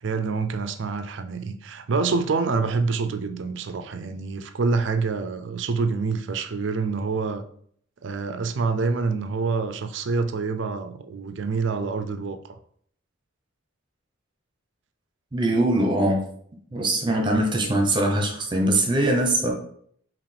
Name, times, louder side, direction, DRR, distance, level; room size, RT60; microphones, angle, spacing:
voice 1, 0.0-7.4 8.0-12.6, right 4 dB, 60° right, 9 dB, 0.4 m, -26 dB
voice 2, 15.3-16.2 16.7-19.5, right 1 dB, 25° right, 2 dB, 0.8 m, -22 dB
4.9 x 3.0 x 3.3 m, 0.62 s
head